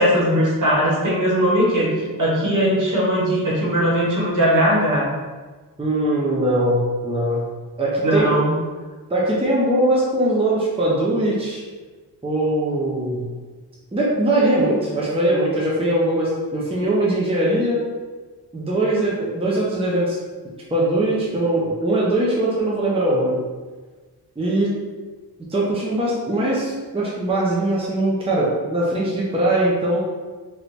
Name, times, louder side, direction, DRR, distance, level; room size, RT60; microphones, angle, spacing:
voice 1, 0.0-5.1 8.0-8.5, equal, 45° right, -5 dB, 1.2 m, -19 dB
voice 2, 5.8-7.4 7.8-8.3 9.1-11.6 12.2-13.3 13.9-17.8 18.5-20.2 20.7-23.4 24.4-24.7 25.5-30.0, right 1 dB, 15° right, -6 dB, 0.7 m, -21 dB
3.1 x 3.1 x 2.6 m, 1.4 s
cardioid pair, 75°, 41 cm